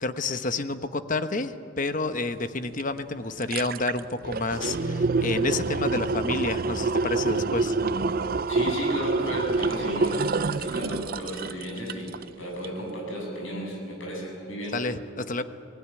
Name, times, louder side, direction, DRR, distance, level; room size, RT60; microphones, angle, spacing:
voice 1, 0.0-7.8 14.7-15.4, left 3 dB, 40° left, 10 dB, 1.0 m, -29 dB
sound 1, 2.8-2.9 3.2-12.3 12.6-12.7, right 3 dB, 45° right, 0.5 m, -27 dB
Guitar, 4.6-7.8, right 3 dB, 80° right, 1.9 m, -37 dB
voice 2, 8.5-12.1 12.4-14.8, equal, 75° left, -1 dB, 7.3 m, -34 dB
25.0 x 19.5 x 9.9 m, 2.6 s
head